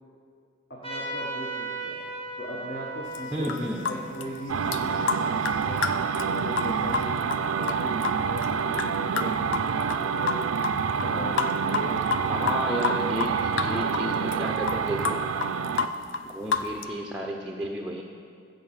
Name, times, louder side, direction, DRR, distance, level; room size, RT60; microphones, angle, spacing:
voice 1, 0.7-14.4, left 1 dB, 50° left, -4 dB, 1.2 m, -39 dB
Trumpet, 0.8-5.9, right 2 dB, 25° left, 1.7 m, -38 dB
sound 1, 3.1-3.2 3.4-4.0 4.2-4.3 4.7-4.8 5.1-8.9 9.2-10.0 10.3-10.7 11.0-11.1 11.4-13.3 13.6-14.0 14.3-14.4 14.7-16.8, left 6 dB, 65° left, 0.5 m, -28 dB
voice 2, 3.3-3.9 12.3-15.2 16.3-18.0, right 1 dB, 5° right, 0 dB, 0.5 m, -32 dB
sound 2, 4.5-16.0, right 6 dB, 90° right, 0.4 m, -27 dB
15.0 x 5.4 x 5.7 m, 2.3 s
head